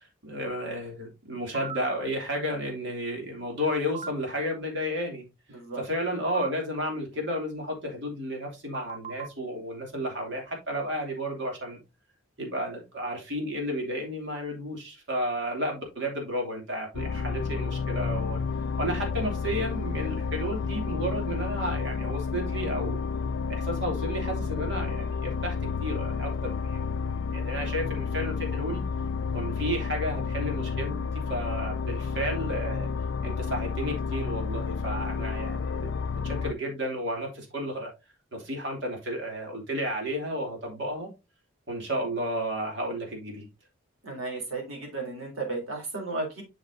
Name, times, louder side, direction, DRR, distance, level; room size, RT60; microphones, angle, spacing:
voice 1, 0.2-5.3 5.7-11.8 12.4-18.4 18.8-23.0 23.5-25.6 25.8-28.8 29.3-32.9 33.2-37.9 38.3-41.1 41.7-43.5, equal, 55° right, 2.8 m, -32 dB
sound 1, 1.5-1.8 3.9-4.1 6.3-6.5 8.7-9.3, right 5 dB, 30° right, 0.5 m, -36 dB
voice 2, 5.5-5.8 44.0-46.4, right 3 dB, 75° right, 3.6 m, -34 dB
sound 2, 16.9-36.5, left 5 dB, 60° left, 0.4 m, -31 dB
7.6 x 6.5 x 2.7 m
head